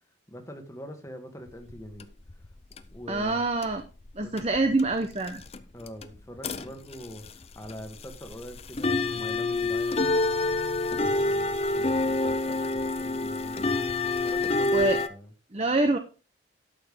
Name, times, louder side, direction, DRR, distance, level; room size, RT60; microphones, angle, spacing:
voice 1, 0.3-2.1 2.9-3.5 4.2-4.3 5.7-10.0 10.9-15.3, equal, 15° left, 5 dB, 1.5 m, -43 dB
sound 1, 1.5-3.3 3.6-4.1 4.4-15.1, left 2 dB, 30° left, 0.6 m, -27 dB
voice 2, 3.1-3.8 4.1-5.4 14.7-15.0 15.5-16.0, right 2 dB, 30° right, 7 dB, 0.8 m, -25 dB
12.0 x 6.8 x 3.6 m, 0.33 s
head